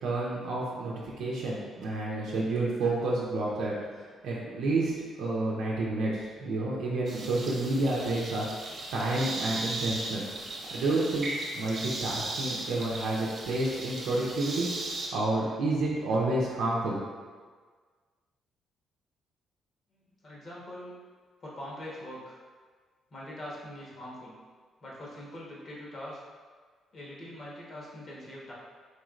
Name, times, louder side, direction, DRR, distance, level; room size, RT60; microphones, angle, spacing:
voice 1, 0.0-8.4 8.9-10.2 10.7-14.7 15.1-17.0, right 2 dB, 85° right, -5 dB, 0.6 m, -30 dB
sound 1, 7.1-15.1, right 2 dB, 55° right, 0.9 m, -37 dB
voice 2, 19.9-20.9 21.4-22.4 23.1-24.3 24.8-26.2 26.9-28.5, left 1 dB, 50° left, -5 dB, 1.2 m, -43 dB
4.4 x 3.1 x 2.5 m, 1.5 s
cardioid pair, 90°, 0 cm